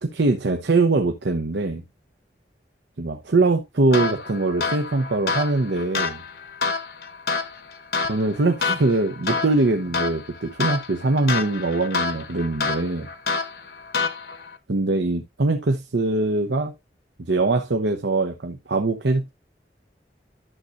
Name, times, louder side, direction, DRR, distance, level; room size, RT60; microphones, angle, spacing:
voice 1, 0.0-1.8 3.0-6.2 8.1-13.1 14.7-16.7 17.2-19.3, right 2 dB, 85° right, 0.8 m, -22 dB
sound 1, 3.9-14.6, left 4 dB, 60° left, 0.9 m, -28 dB
11.0 x 6.3 x 2.5 m
head